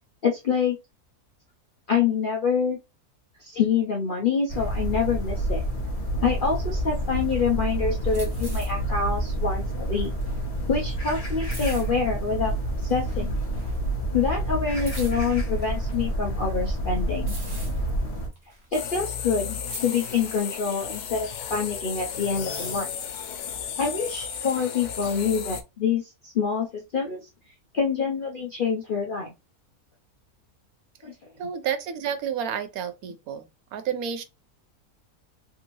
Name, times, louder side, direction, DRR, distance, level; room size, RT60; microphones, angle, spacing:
voice 1, 0.2-0.8 1.9-2.8 3.4-5.6 6.2-10.1 10.7-12.5 12.8-13.4 14.1-17.4 18.7-22.9 23.8-27.3 27.7-29.3 31.0-31.1, left 6 dB, 60° left, 0.5 m, -26 dB
sound 1, 4.5-18.3, right 1 dB, 25° left, 1.0 m, -28 dB
sound 2, 7.2-12.4 12.8-14.1 14.4-19.3 19.6-21.9 22.2-23.7, right 1 dB, 30° right, 1.2 m, -45 dB
sound 3, 18.7-25.6, left 8 dB, 85° left, 1.2 m, -34 dB
voice 2, 31.4-34.2, right 8 dB, 75° right, 1.0 m, -30 dB
3.5 x 2.5 x 3.0 m
omnidirectional pair, 1.6 m